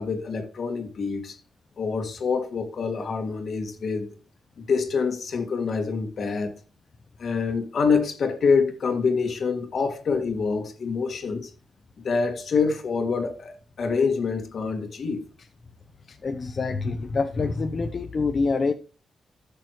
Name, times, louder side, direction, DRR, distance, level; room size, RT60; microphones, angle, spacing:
voice 1, 0.0-1.4 1.8-4.1 4.6-6.5 7.2-11.5 12.0-15.3, left 5 dB, 55° left, 2.0 m, -26 dB
voice 2, 16.2-18.7, left 4 dB, 40° left, 0.7 m, -26 dB
13.5 x 6.8 x 3.1 m
cardioid pair, 115°, 0 cm